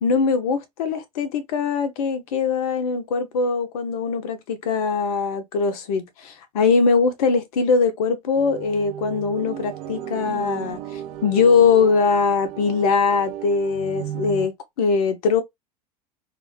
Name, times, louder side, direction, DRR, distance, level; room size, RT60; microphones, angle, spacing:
voice 1, 0.0-14.5 14.8-15.4, left 5 dB, 70° left, 0.6 m, -21 dB
sound 1, 8.3-14.5, right 10 dB, 60° right, 0.5 m, -34 dB
2.3 x 2.1 x 3.7 m
hypercardioid pair, 85°, 20 cm